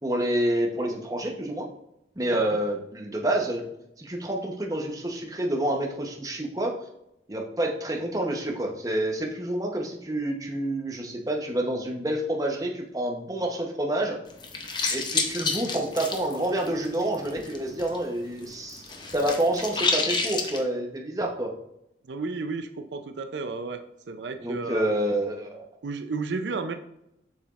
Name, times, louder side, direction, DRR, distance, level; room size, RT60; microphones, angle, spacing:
voice 1, 0.0-1.7 2.2-3.7 4.0-6.7 7.3-14.2 14.9-18.8 19.1-21.5 24.4-25.6, right 1 dB, 20° right, 1 dB, 0.8 m, -28 dB
sound 1, 14.3-18.0 18.2-20.6, left 4 dB, 25° left, 0.6 m, -29 dB
voice 2, 22.1-24.9 25.8-26.7, right 4 dB, 80° right, 7 dB, 0.5 m, -32 dB
7.1 x 5.8 x 2.5 m, 0.81 s
head